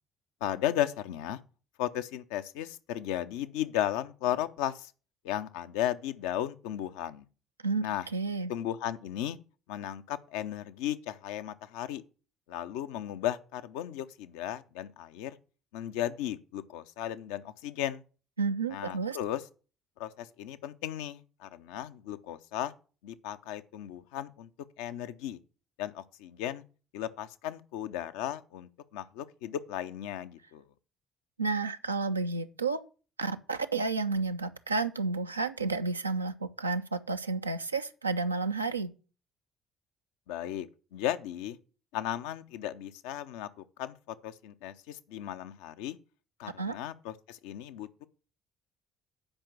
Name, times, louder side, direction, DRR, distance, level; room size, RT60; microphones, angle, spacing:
voice 1, 0.4-1.4 1.8-4.9 5.2-7.3 7.8-8.1 8.5-9.4 9.7-12.0 12.5-15.4 15.7-18.0 18.7-19.4 20.0-22.7 23.0-24.5 24.8-25.4 25.8-26.6 26.9-30.6 40.3-40.7 40.9-41.6 41.9-44.0 44.2-46.0 46.4-48.0, left 11 dB, 65° left, 0.5 m, -35 dB
voice 2, 8.1-8.5 18.4-19.2 31.4-32.8 33.2-38.9 46.6-46.8, right 4 dB, 85° right, 0.4 m, -31 dB
8.8 x 5.1 x 7.2 m
figure-of-eight pair, 50°, 0 cm